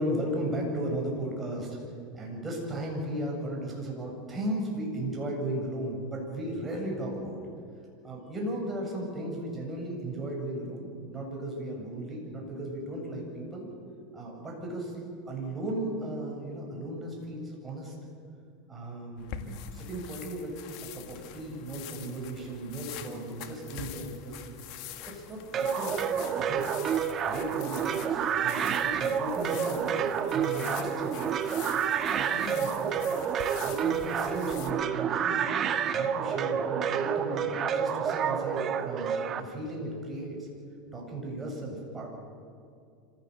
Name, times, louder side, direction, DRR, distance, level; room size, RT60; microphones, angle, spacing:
voice 1, 0.0-1.8 2.1-7.4 8.0-13.7 14.1-14.9 15.3-17.9 18.7-20.5 20.9-24.4 24.9-26.8 27.3-31.4 31.7-31.8 32.1-33.0 33.6-35.5 35.9-40.4 40.9-42.2, right 1 dB, 20° right, -1 dB, 7.7 m, -36 dB
sound 1, 19.2-34.7, left 10 dB, 55° left, 1.9 m, -45 dB
sound 2, 25.5-39.4, right 8 dB, 35° right, 1.5 m, -29 dB
26.0 x 16.5 x 8.3 m, 2.4 s
supercardioid pair, 115°, 0 cm